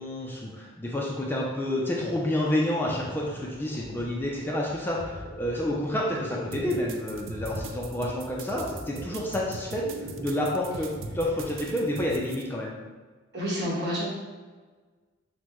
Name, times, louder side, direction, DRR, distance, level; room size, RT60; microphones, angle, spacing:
voice 1, 0.0-9.9 10.2-12.8, left 1 dB, 10° left, -3 dB, 0.4 m, -29 dB
sound 1, 1.8-12.2, equal, 30° right, 1.5 m, -42 dB
sound 2, 6.5-12.4, right 5 dB, 75° right, 0.4 m, -41 dB
voice 2, 13.3-14.0, equal, 55° right, -6 dB, 1.4 m, -29 dB
6.2 x 2.2 x 3.0 m, 1.4 s
head